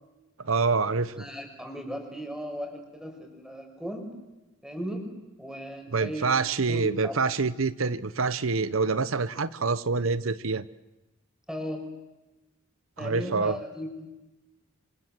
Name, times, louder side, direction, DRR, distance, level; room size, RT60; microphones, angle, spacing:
voice 1, 0.4-1.3 5.9-10.7 13.0-13.6, right 4 dB, 85° right, 15 dB, 0.9 m, -26 dB
voice 2, 1.2-4.1 4.6-7.2 11.5-11.9 13.0-14.1, equal, 5° right, 4 dB, 6.1 m, -37 dB
27.5 x 27.0 x 7.7 m, 1.0 s
head